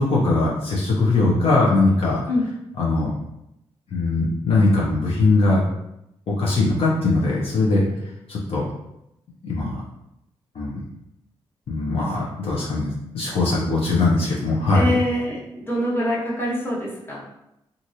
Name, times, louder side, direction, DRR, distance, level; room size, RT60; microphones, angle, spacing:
voice 1, 0.0-2.2 2.8-3.1 3.9-5.6 6.3-7.9 8.3-8.6 9.4-9.8 10.5-10.8 11.7-15.0, left 2 dB, 65° left, -5 dB, 0.8 m, -20 dB
voice 2, 14.7-17.3, left 1 dB, 20° left, -5 dB, 1.2 m, -25 dB
2.9 x 2.6 x 2.7 m, 0.84 s
cardioid pair, 60°, 10 cm